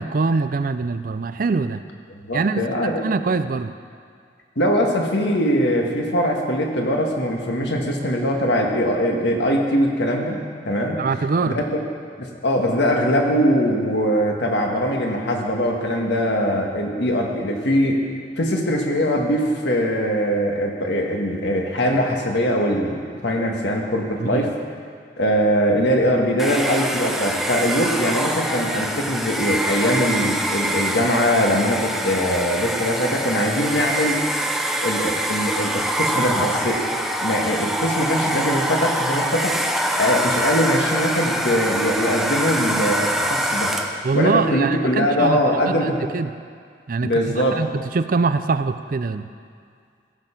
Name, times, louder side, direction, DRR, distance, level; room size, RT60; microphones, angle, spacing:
voice 1, 0.0-1.8 2.3-2.6 3.0-3.7 11.0-11.6 24.3-24.5 44.0-46.3 46.9-49.3, right 4 dB, 50° right, 11 dB, 0.4 m, -23 dB
voice 2, 2.1-3.0 4.5-10.4 10.6-11.0 11.4-11.8 12.2-18.0 18.4-24.5 25.2-34.2 34.8-39.6 40.0-43.7 44.1-46.0 47.0-47.6, equal, 70° left, 1 dB, 1.6 m, -21 dB
Domestic sounds home sounds, 26.4-44.1, right 1 dB, ahead, 0.6 m, -24 dB
15.5 x 6.9 x 5.8 m, 2.2 s
head